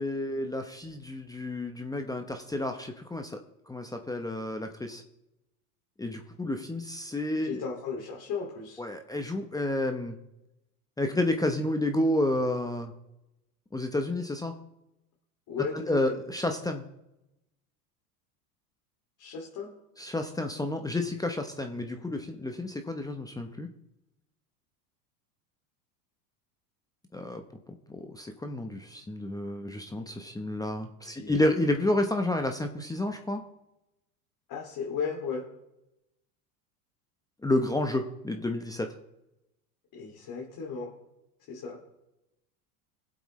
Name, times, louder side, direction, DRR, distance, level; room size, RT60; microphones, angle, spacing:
voice 1, 0.0-3.4 3.7-5.0 6.0-7.6 8.8-10.2 11.0-12.9 13.7-14.6 15.9-16.8 20.0-23.7 27.1-33.4 37.4-38.9, left 1 dB, 10° left, 5 dB, 0.9 m, -30 dB
voice 2, 7.3-8.8 15.5-16.2 19.2-19.7 31.0-31.3 34.5-35.5 39.9-40.9 41.5-41.8, left 5 dB, 45° left, -2 dB, 2.5 m, -35 dB
20.5 x 7.9 x 3.2 m, 0.89 s
hypercardioid pair, 100°, 45 cm